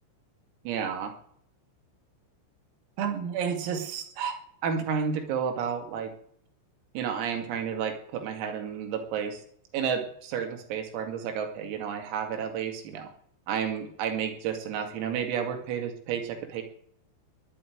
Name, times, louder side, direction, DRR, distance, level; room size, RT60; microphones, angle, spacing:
voice 1, 0.6-1.1 3.0-4.3 4.6-6.1 6.9-9.4 9.7-13.1 13.5-16.6, right 7 dB, 85° right, 5 dB, 5.0 m, -31 dB
20.5 x 7.5 x 9.3 m, 0.67 s
omnidirectional pair, 5.9 m